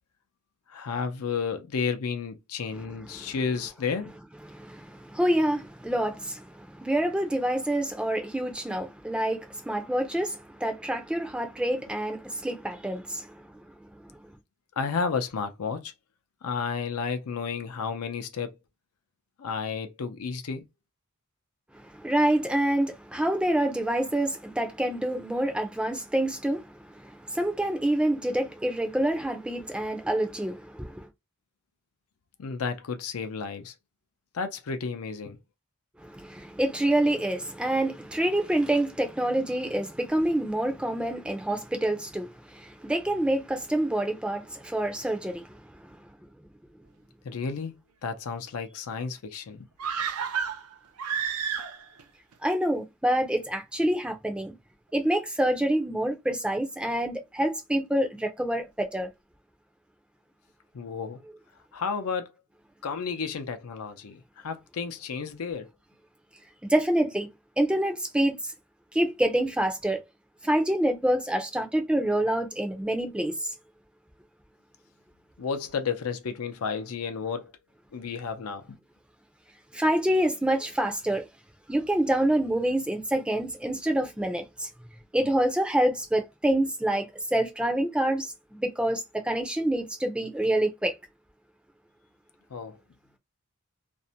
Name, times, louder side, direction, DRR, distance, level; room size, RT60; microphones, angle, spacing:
voice 1, 0.7-4.1 14.8-15.9 16.4-18.5 19.4-20.6 32.4-33.7 34.3-35.4 47.2-47.7 48.0-49.7 60.7-61.2 61.7-62.3 62.8-65.7 75.4-77.5 77.9-78.8 92.5-92.8, left 5 dB, 85° left, 0.5 m, -32 dB
voice 2, 4.5-13.3 22.0-26.6 26.9-31.1 36.0-45.5 52.4-54.5 54.9-59.1 66.7-67.3 67.6-68.4 68.9-70.0 70.4-73.3 79.7-81.2 81.7-84.7 85.1-90.9, right 1 dB, 5° right, 0.4 m, -27 dB
sound 1, 49.8-52.0 52.3-52.4, right 7 dB, 85° right, 0.5 m, -31 dB
2.5 x 2.1 x 2.7 m
head